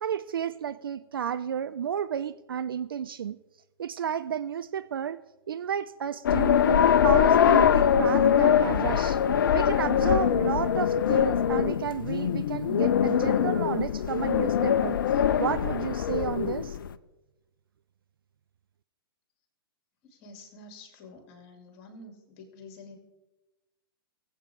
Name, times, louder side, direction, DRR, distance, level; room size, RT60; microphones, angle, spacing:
voice 1, 0.0-3.4 3.8-5.2 5.5-9.2 9.5-15.0 15.4-16.8, right 8 dB, 65° right, 14 dB, 0.4 m, -32 dB
sound 1, 6.3-16.9, left 8 dB, 55° left, 0.5 m, -23 dB
voice 2, 20.0-23.0, left 2 dB, 40° left, 4 dB, 2.7 m, -48 dB
20.5 x 8.1 x 3.6 m, 1.1 s
figure-of-eight pair, 110°, 13 cm